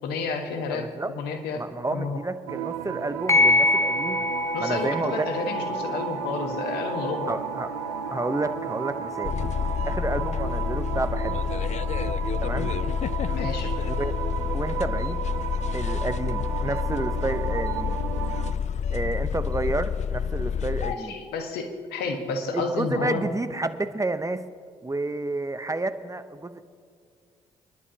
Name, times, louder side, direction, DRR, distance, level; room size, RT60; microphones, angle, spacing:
voice 1, 0.0-0.9 1.1-1.6 1.9-2.2 4.5-7.3 13.3-13.7 20.8-23.2, left 4 dB, 70° left, 5 dB, 1.5 m, -30 dB
voice 2, 0.7-1.1 1.6-4.2 4.6-5.3 7.2-7.7 8.1-9.3 9.9-11.4 12.4-12.7 13.8-14.1 14.5-15.2 15.7-18.0 18.9-21.1 22.5-24.4 24.8-26.6, right 2 dB, 20° right, 11 dB, 0.9 m, -30 dB
sound 1, 2.5-18.5, right 11 dB, 85° right, 0.5 m, -34 dB
sound 2, 3.3-12.3, left 2 dB, 15° left, 1.0 m, -29 dB
sound 3, 9.2-21.0, left 7 dB, 45° left, 0.4 m, -28 dB
27.0 x 11.0 x 2.9 m, 2.1 s
hypercardioid pair, 45°, 17 cm